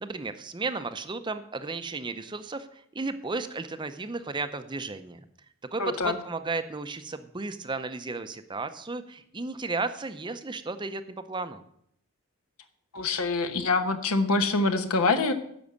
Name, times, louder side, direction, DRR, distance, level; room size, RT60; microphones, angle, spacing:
voice 1, 0.0-5.2 5.7-11.6, right 3 dB, 20° right, 10 dB, 0.6 m, -34 dB
voice 2, 5.8-6.2 12.9-15.3, left 3 dB, 75° left, 7 dB, 1.0 m, -25 dB
10.5 x 6.2 x 8.2 m, 0.70 s
head